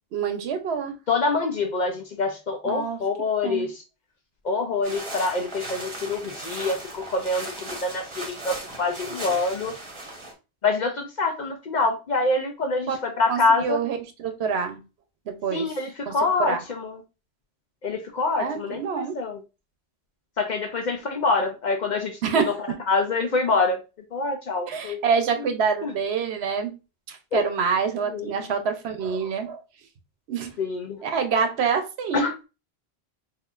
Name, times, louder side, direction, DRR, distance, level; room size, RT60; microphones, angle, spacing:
voice 1, 0.1-1.0 2.7-3.0 3.4-3.7 12.9-13.0 13.3-14.8 15.3-15.8 16.1-16.6 18.4-19.2 22.2-22.8 24.7-26.7 27.1-29.6 30.3-30.5 31.0-32.3, right 6 dB, 75° right, 0.9 m, -26 dB
voice 2, 1.1-3.8 4.4-9.7 10.6-13.8 15.5-17.0 17.8-18.8 19.1-19.4 20.4-22.5 22.9-23.8 24.1-25.0 25.8-25.9 27.3-27.4 28.1-28.5 30.6-31.0 32.1-32.4, left 3 dB, 55° left, 0.5 m, -26 dB
sound 1, 4.8-10.3, right 2 dB, 30° right, 0.9 m, -37 dB
4.2 x 2.5 x 2.3 m
omnidirectional pair, 1.1 m